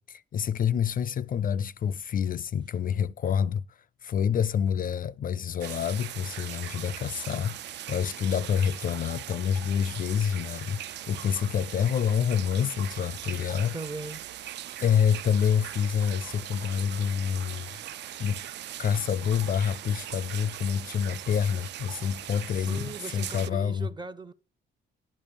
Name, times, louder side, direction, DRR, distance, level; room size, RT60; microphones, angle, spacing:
voice 1, 0.0-13.8 14.8-17.7 18.2-18.4 18.8-23.9, left 8 dB, 45° left, 0.4 m, -27 dB
sound 1, 5.6-23.5, right 12 dB, 60° right, 0.4 m, -40 dB
voice 2, 13.7-14.2 22.6-24.3, right 3 dB, 20° right, 0.6 m, -39 dB
10.5 x 5.3 x 6.9 m
cardioid pair, 90°, 20 cm